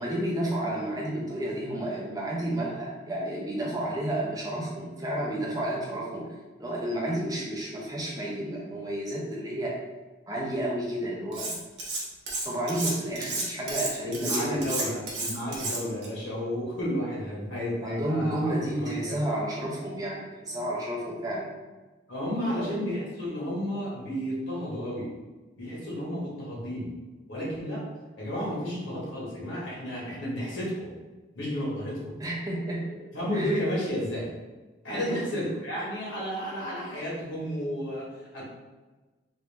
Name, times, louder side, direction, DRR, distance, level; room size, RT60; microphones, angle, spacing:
voice 1, 0.0-9.8 10.3-11.6 12.4-14.9 17.8-21.5 22.5-22.7 32.2-32.9 33.3-33.6 34.9-35.5, right 1 dB, 20° right, -4 dB, 0.6 m, -31 dB
Cutlery silverware, 11.3-12.0 12.3-16.1, right 3 dB, 60° right, 0.9 m, -31 dB
voice 2, 14.0-19.4 22.1-25.1 25.6-26.9 27.3-27.8 28.2-30.9 31.3-32.1 32.9-34.3 34.8-38.4, equal, 85° left, -6 dB, 1.5 m, -32 dB
3.0 x 2.6 x 3.4 m, 1.2 s
head